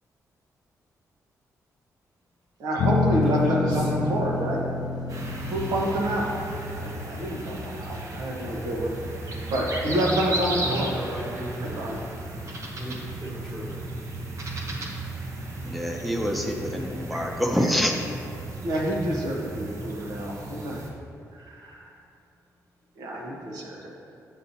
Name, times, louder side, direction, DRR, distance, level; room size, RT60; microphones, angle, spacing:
voice 1, 2.6-4.7 5.5-6.3 6.7-9.1 9.5-10.9 11.8-11.9 18.6-20.8 21.4-21.8 23.0-23.9, right 1 dB, 80° right, -2 dB, 1.2 m, -28 dB
sound 1, 2.8-8.3, left 4 dB, 80° left, 0.4 m, -29 dB
voice 2, 3.1-3.9 10.6-12.1 12.4-12.5 12.7-13.8 14.5-14.9, equal, 20° right, -9 dB, 1.3 m, -35 dB
sound 2, 5.1-20.9, right 1 dB, 50° right, 0.9 m, -35 dB
voice 3, 15.7-18.0, equal, ahead, 2 dB, 0.6 m, -26 dB
7.5 x 6.6 x 2.7 m, 2.5 s
cardioid pair, 115°, 6 cm